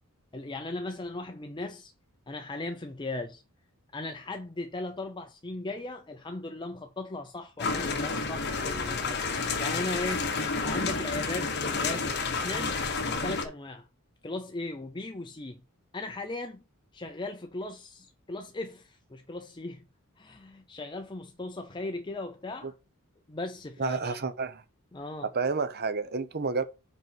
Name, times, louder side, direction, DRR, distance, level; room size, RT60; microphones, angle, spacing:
voice 1, 0.3-1.9 2.3-3.4 3.9-9.3 9.6-10.3 10.6-12.8 13.2-13.9 14.2-15.6 15.9-16.6 16.9-19.8 20.2-22.7 23.3-24.2 24.9-25.3, left 2 dB, 20° left, 0.6 m, -37 dB
sound 1, 7.6-13.4, left 4 dB, 50° left, 1.4 m, -30 dB
voice 2, 23.8-24.6 25.2-26.6, right 4 dB, 45° right, 0.8 m, -30 dB
5.4 x 5.3 x 6.0 m
head